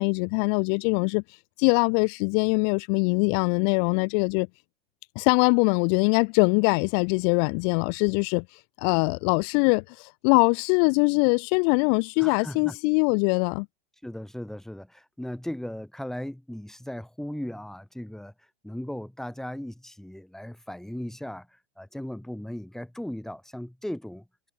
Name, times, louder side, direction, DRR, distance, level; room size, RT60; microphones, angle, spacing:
voice 1, 0.0-4.5 5.2-13.7, left 40 dB or more, 45° left, 0.7 m, -23 dB
voice 2, 12.2-12.8 14.0-18.3 18.6-24.5, left 1 dB, ahead, 2.7 m, -37 dB
hypercardioid pair, 125°, 29 cm